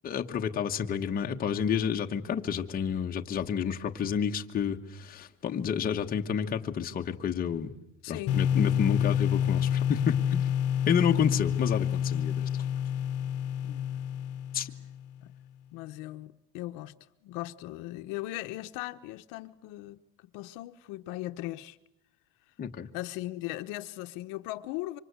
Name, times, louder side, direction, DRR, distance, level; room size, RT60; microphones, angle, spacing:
voice 1, 0.0-7.7 8.1-10.4 10.9-12.5 14.5-14.7 22.6-22.9, left 7 dB, 25° left, 1.3 m, -30 dB
voice 2, 8.0-8.4 13.6-14.0 15.2-15.3 15.7-16.9 17.2-21.8 22.9-25.0, left 17 dB, 65° left, 1.1 m, -38 dB
sound 1, 8.3-15.1, left 9 dB, 45° left, 1.3 m, -28 dB
27.0 x 25.0 x 8.2 m
cardioid pair, 160°, 34 cm